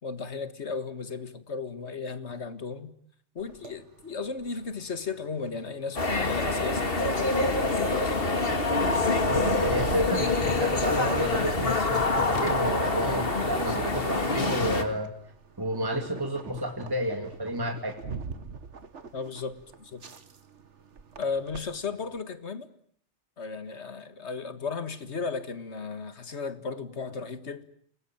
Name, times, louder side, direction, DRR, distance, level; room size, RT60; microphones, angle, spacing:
voice 1, 0.0-2.9 3.4-8.3 19.1-20.0 21.2-22.7 23.4-27.6, left 5 dB, 70° left, 2.1 m, -35 dB
sound 1, 3.4-22.2, right 4 dB, 80° right, 1.9 m, -41 dB
sound 2, 6.0-14.8, left 3 dB, 55° left, 2.4 m, -26 dB
voice 2, 9.3-15.1 15.6-18.0, equal, 20° right, 2.4 m, -30 dB
28.5 x 20.5 x 9.0 m
omnidirectional pair, 1.2 m